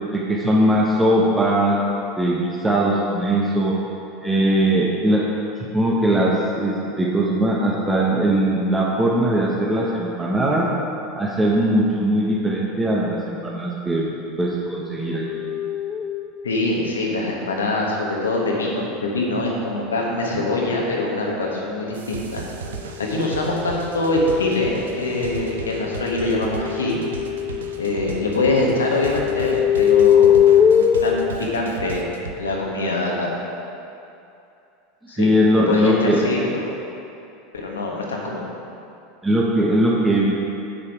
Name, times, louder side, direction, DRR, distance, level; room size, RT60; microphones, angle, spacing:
voice 1, 0.1-1.8 2.2-3.8 4.2-5.2 5.7-10.7 11.2-14.1 14.4-15.2 35.1-36.2 39.2-40.3, right 1 dB, 10° right, -4 dB, 1.2 m, -20 dB
sound 1, 14.9-16.4 24.2-27.8 28.1-31.3, left 9 dB, 25° left, 0.4 m, -21 dB
voice 2, 16.4-22.4 23.0-27.0 27.8-30.4 30.7-32.0 32.4-33.3 35.1-35.3 35.7-36.7 37.5-38.5, left 2 dB, 85° left, -2 dB, 1.4 m, -24 dB
sound 2, 21.9-32.4, right 5 dB, 80° right, 0.6 m, -36 dB
7.8 x 6.8 x 4.8 m, 2.7 s
hypercardioid pair, 85°, 0 cm